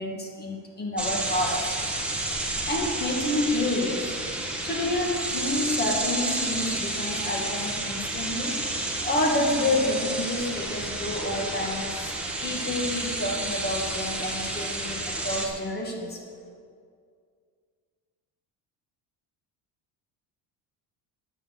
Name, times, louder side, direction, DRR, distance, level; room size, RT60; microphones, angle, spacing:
voice 1, 0.0-1.8 2.7-4.2 4.6-8.6 9.0-16.2, left 1 dB, 25° left, 0 dB, 2.1 m, -29 dB
sound 1, 1.0-15.5, right 1 dB, 5° right, 1.5 m, -30 dB
10.5 x 9.4 x 7.0 m, 2.2 s
cardioid pair, 150°, 42 cm